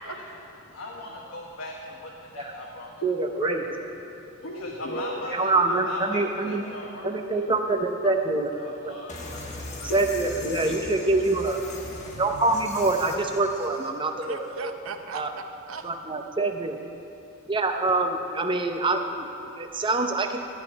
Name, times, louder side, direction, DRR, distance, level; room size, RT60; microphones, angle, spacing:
voice 1, 0.7-3.6 4.4-11.6, left 1 dB, 70° left, -2 dB, 1.1 m, -35 dB
voice 2, 3.0-3.6 5.3-6.6 7.0-8.7 9.9-11.6 12.2-14.4 15.1-15.3 15.8-16.8 17.5-19.3 19.6-20.4, right 2 dB, 20° right, 5 dB, 0.6 m, -25 dB
voice 3, 4.4-5.4 14.2-15.9, right 4 dB, 70° right, 7 dB, 0.7 m, -38 dB
sound 1, 9.1-13.9, left 2 dB, 35° left, 1.3 m, -39 dB
13.5 x 5.3 x 9.2 m, 3.0 s
head